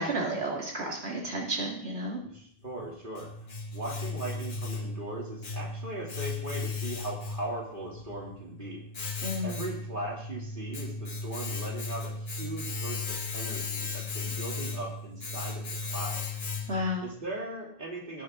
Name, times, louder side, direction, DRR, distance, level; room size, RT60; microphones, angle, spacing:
voice 1, 0.0-2.2 9.2-9.7 16.7-17.1, equal, 90° right, -2 dB, 2.3 m, -32 dB
voice 2, 2.2-8.8 9.4-16.6 17.0-18.2, right 1 dB, 55° right, -3 dB, 2.9 m, -39 dB
Domestic sounds home sounds, 2.6-17.0, left 3 dB, 55° left, 1.2 m, -36 dB
18.5 x 7.0 x 3.7 m, 0.63 s
omnidirectional pair, 1.0 m